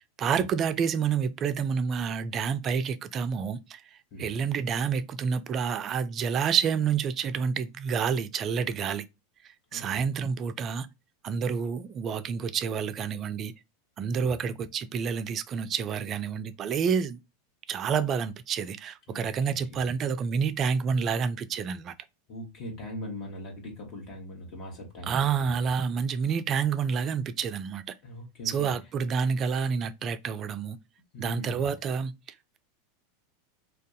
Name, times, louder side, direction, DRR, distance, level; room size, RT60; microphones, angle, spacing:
voice 1, 0.2-9.1 9.7-10.9 11.2-13.5 14.0-17.2 17.7-21.9 25.1-27.9 28.4-30.8 31.2-32.1, right 6 dB, 35° right, 0.4 m, -28 dB
voice 2, 19.1-19.9 22.3-25.5 28.0-28.7 31.1-31.7, left 1 dB, 40° left, 1.3 m, -41 dB
2.5 x 2.2 x 3.7 m
figure-of-eight pair, 90°, 0 cm